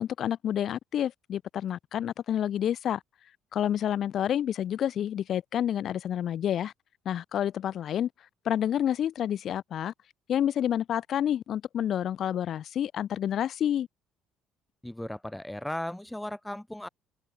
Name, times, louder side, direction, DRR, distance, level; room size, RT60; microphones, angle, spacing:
voice 1, 0.0-3.0 3.5-6.7 7.1-8.1 8.4-9.9 10.3-13.9, left 10 dB, 55° left, 0.6 m, -29 dB
voice 2, 14.8-16.9, left 1 dB, 5° left, 1.5 m, -36 dB
hypercardioid pair, 65°, 0 cm